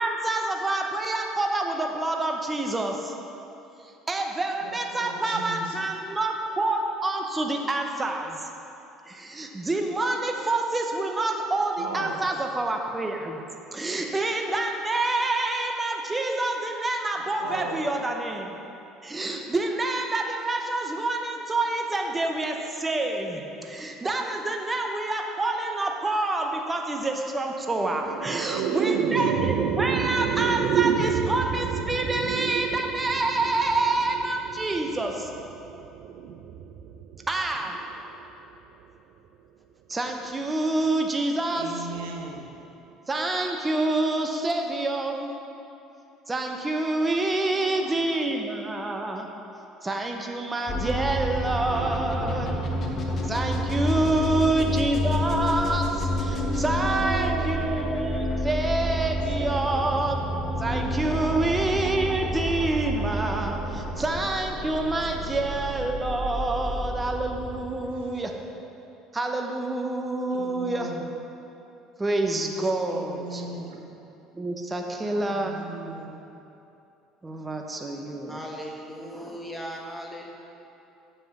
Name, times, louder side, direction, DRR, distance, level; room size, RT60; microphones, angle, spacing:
voice 1, 0.0-3.1 4.1-8.4 9.1-13.4 13.7-18.5 19.0-35.3 37.3-37.8 39.9-41.9 43.1-45.3 46.3-49.3 49.8-52.5 53.3-60.2 60.6-68.3 69.1-70.9 72.0-73.7 74.3-75.6 77.2-78.4, right 2 dB, 20° right, 3 dB, 0.8 m, -27 dB
voice 2, 4.9-5.9 11.8-12.2 17.4-17.8 28.5-29.8 31.7-31.8 41.5-42.5 47.5-48.2 51.7-52.0 52.2-52.4 54.0-54.4 56.9-57.6 61.1-61.4 63.7-63.8 64.5-64.6 65.1-65.2 67.8-68.3 70.3-71.0 72.9-73.8 75.0-76.1 78.1-78.2, right 4 dB, 80° right, 1 dB, 1.0 m, -36 dB
sound 1, 27.7-38.2, right 7 dB, 65° right, 0.4 m, -29 dB
sound 2, 50.7-68.4, equal, 45° left, 1.1 m, -29 dB
voice 3, 78.3-80.3, equal, 5° left, -1 dB, 1.4 m, -37 dB
7.1 x 5.6 x 5.9 m, 2.8 s
supercardioid pair, 80°, 0 cm